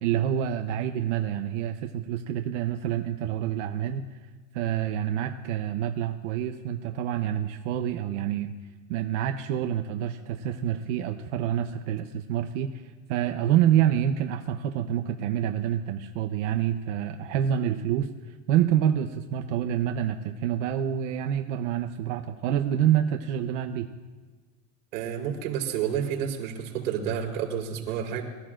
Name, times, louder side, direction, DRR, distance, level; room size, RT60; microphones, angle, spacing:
voice 1, 0.0-4.1 4.5-8.5 8.9-23.9, right 10 dB, 55° right, 5 dB, 0.9 m, -27 dB
voice 2, 24.9-28.2, right 8 dB, 85° right, 0 dB, 4.2 m, -30 dB
25.0 x 14.5 x 2.5 m, 1.3 s
supercardioid pair, 165°, 43 cm